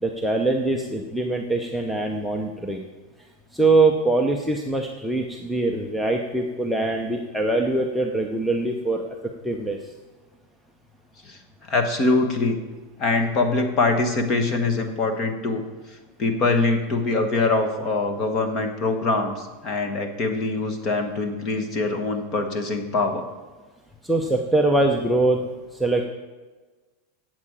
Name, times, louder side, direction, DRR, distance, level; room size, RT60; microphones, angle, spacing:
voice 1, 0.0-2.8 3.5-9.2 9.4-9.9 24.0-25.4 25.7-26.1, right 2 dB, ahead, 2 dB, 0.6 m, -23 dB
voice 2, 11.7-12.6 13.0-15.6 16.2-23.3, left 3 dB, 25° left, 6 dB, 1.1 m, -23 dB
8.6 x 7.6 x 8.7 m, 1.3 s
supercardioid pair, 180°, 0 cm